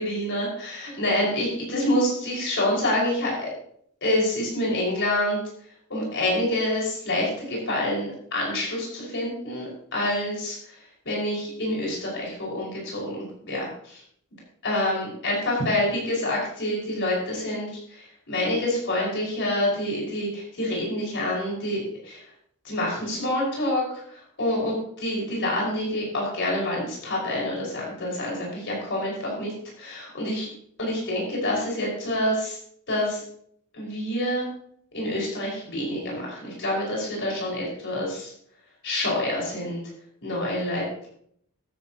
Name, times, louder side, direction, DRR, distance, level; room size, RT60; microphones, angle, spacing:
voice 1, 0.0-3.5 4.0-5.4 5.9-10.6 11.1-14.0 14.6-22.2 22.6-23.8 24.4-29.5 29.8-30.5 30.8-32.6 32.9-33.2 33.7-34.5 34.9-38.3 38.8-39.8 40.2-41.1, left 1 dB, 55° left, -3 dB, 5.7 m, -27 dB
13.5 x 11.5 x 3.0 m, 0.66 s
head